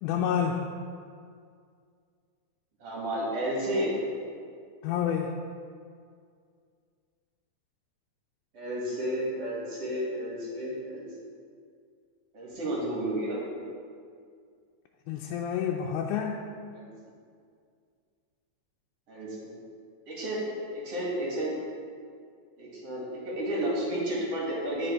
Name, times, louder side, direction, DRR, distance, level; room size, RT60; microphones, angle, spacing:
voice 1, 0.0-0.7 4.8-5.4 15.1-16.5, left 8 dB, 85° left, 0 dB, 2.0 m, -29 dB
voice 2, 2.8-3.9 8.5-11.1 12.3-13.4 16.7-16.9 19.1-19.6 20.1-20.5 20.7-21.6 22.6-24.9, right 1 dB, 55° right, -6 dB, 2.9 m, -32 dB
10.5 x 5.3 x 4.6 m, 2.2 s
omnidirectional pair, 3.6 m